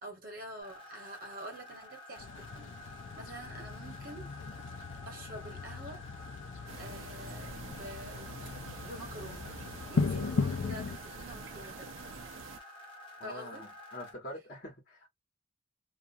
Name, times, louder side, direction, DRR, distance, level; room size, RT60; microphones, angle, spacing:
voice 1, 0.0-2.8 3.2-4.3 5.1-6.0 6.8-8.5 8.8-9.5 9.9-12.0 13.2-13.7, right 1 dB, 45° right, 1.3 m, -47 dB
sound 1, 0.6-14.1, left 1 dB, 25° left, 0.9 m, -51 dB
sound 2, 2.2-11.0, left 4 dB, 75° left, 0.4 m, -37 dB
sound 3, 6.7-12.6, right 4 dB, 80° right, 0.6 m, -47 dB
voice 2, 13.2-15.1, left 1 dB, 45° left, 1.1 m, -45 dB
2.6 x 2.3 x 2.6 m
head